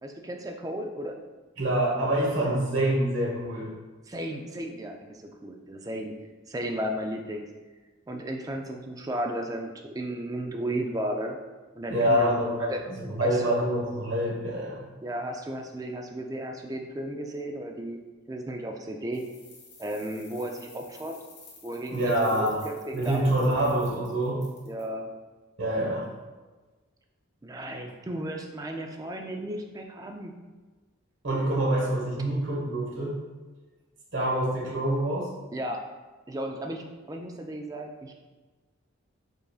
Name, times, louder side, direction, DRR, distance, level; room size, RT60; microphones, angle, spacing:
voice 1, 0.0-1.2 2.4-2.5 4.1-6.1 6.5-7.5 8.1-11.4 11.8-12.4 12.7-12.8 13.2-13.5 15.0-18.0 18.3-19.2 19.8-21.2 21.6-23.6 24.6-25.1 27.4-30.3 35.5-35.8 36.3-38.1, right 1 dB, 15° right, 3 dB, 0.3 m, -34 dB
voice 2, 1.6-3.7 11.9-14.9 21.9-22.6 22.9-24.4 25.6-26.1 31.2-33.1 34.1-35.3, right 1 dB, 65° right, -4 dB, 1.2 m, -26 dB
sound 1, 19.1-24.8, left 4 dB, 50° left, 1.3 m, -52 dB
5.3 x 3.9 x 2.4 m, 1.3 s
head